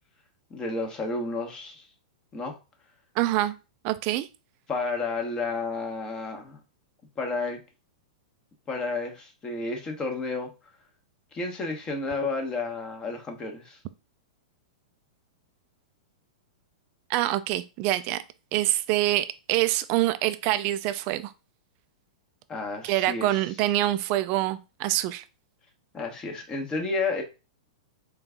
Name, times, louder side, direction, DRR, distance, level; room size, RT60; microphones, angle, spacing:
voice 1, 0.5-1.8 2.3-2.6 4.7-6.6 7.2-7.6 8.7-10.5 11.3-13.8 22.5-23.4 25.9-27.2, left 3 dB, 25° left, 1.0 m, -31 dB
voice 2, 3.2-3.5 3.8-4.3 17.1-18.2 18.5-21.3 22.8-25.2, right 15 dB, 45° right, 0.4 m, -25 dB
3.9 x 2.4 x 3.5 m
hypercardioid pair, 115°, 4 cm